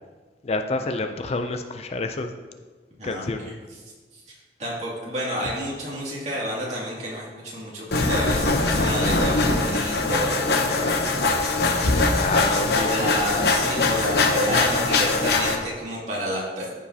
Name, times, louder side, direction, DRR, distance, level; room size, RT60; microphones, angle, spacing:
voice 1, 0.4-2.3 3.0-3.6 12.1-13.1, left 3 dB, 35° left, 6 dB, 0.4 m, -28 dB
voice 2, 3.0-3.5 4.1-4.2 4.6-10.9 12.7-16.7, equal, 40° right, -6 dB, 2.5 m, -30 dB
sound 1, 7.9-15.6, left 3 dB, 60° left, 0.8 m, -22 dB
14.0 x 5.0 x 2.8 m, 1.4 s
head